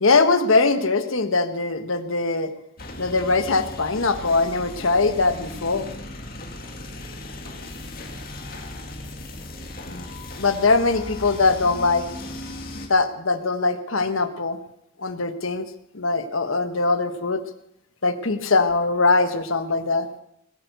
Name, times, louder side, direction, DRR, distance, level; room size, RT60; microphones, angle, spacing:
voice 1, 0.0-2.5 3.0-5.9 9.9-10.0 10.4-12.1 12.9-14.6 15.0-15.7 15.9-17.4 18.0-20.1, left 3 dB, 75° left, 9 dB, 1.4 m, -21 dB
sound 1, 2.8-12.9, left 1 dB, 45° left, 2.0 m, -37 dB
20.5 x 9.5 x 6.7 m, 0.79 s
head